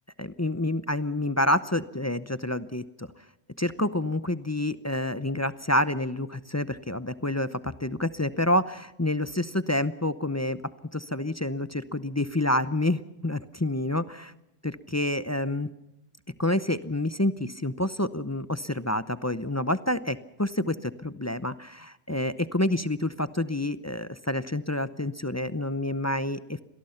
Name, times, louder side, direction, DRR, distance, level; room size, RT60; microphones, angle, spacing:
voice 1, 0.2-3.1 3.6-10.6 10.9-14.3 14.6-15.7 16.4-26.6, left 1 dB, 20° left, 13 dB, 0.5 m, -28 dB
26.0 x 18.5 x 5.8 m, 0.94 s
omnidirectional pair, 1.3 m